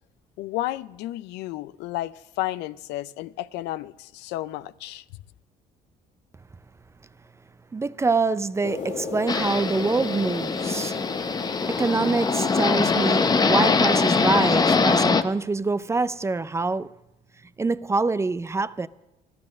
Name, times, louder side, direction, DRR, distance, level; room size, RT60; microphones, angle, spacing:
voice 1, 0.4-5.0, left 15 dB, 90° left, 0.5 m, -32 dB
voice 2, 7.7-11.0 11.7-16.9 17.6-18.9, right 3 dB, 15° right, 0.4 m, -25 dB
sound 1, 8.6-15.0, left 5 dB, 50° left, 1.6 m, -35 dB
sound 2, 9.3-15.2, left 4 dB, 25° left, 0.7 m, -22 dB
13.0 x 12.5 x 6.4 m
cardioid pair, 110°, 17 cm